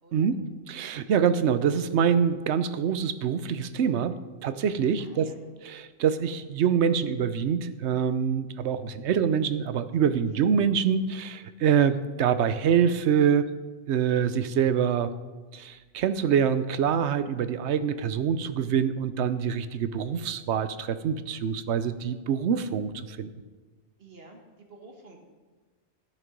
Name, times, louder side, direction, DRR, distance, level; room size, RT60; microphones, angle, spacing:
voice 1, 0.1-4.1 4.4-5.3 5.6-13.5 13.9-15.1 15.5-23.3, right 7 dB, 75° right, 12 dB, 0.9 m, -25 dB
voice 2, 5.0-5.4 10.3-10.5 24.0-25.2, right 2 dB, 55° right, 2 dB, 1.8 m, -50 dB
13.5 x 7.5 x 5.2 m, 1.3 s
omnidirectional pair, 1.2 m